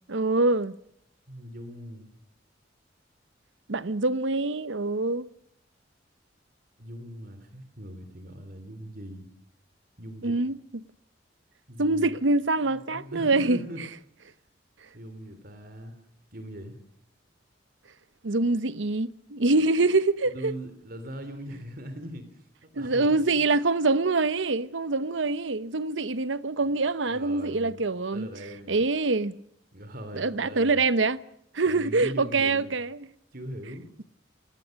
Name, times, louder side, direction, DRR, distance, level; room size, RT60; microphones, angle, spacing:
voice 1, 0.1-0.8 3.7-5.3 10.2-10.6 11.8-13.6 18.2-20.5 22.7-28.3 28.7-29.4 30.2-31.2 31.5-33.1, right 3 dB, 80° right, 0.9 m, -25 dB
voice 2, 1.3-2.1 6.8-9.3 10.0-10.4 11.7-12.2 12.7-13.8 14.2-14.3 14.9-16.0 16.3-16.8 20.2-22.5 22.7-23.4 26.6-27.8 28.1-28.8 29.7-30.8 31.7-32.8 33.3-33.9, equal, 50° right, 3.1 m, -41 dB
29.5 x 20.0 x 6.4 m
head